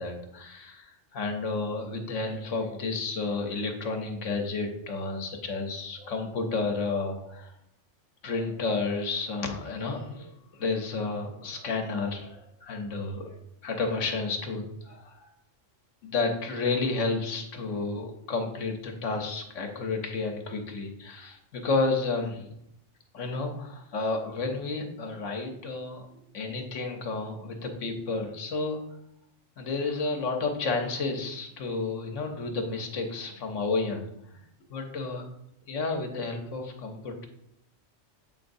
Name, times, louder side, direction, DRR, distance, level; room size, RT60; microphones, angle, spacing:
voice 1, 0.0-7.5 8.2-10.3 10.6-13.4 13.6-15.3 16.0-22.5 23.1-26.0 26.3-28.8 29.6-34.1 34.3-34.4 34.7-35.2 35.7-37.3, left 3 dB, 75° left, 3 dB, 1.2 m, -31 dB
7.3 x 5.2 x 2.6 m, 0.77 s
omnidirectional pair, 1.3 m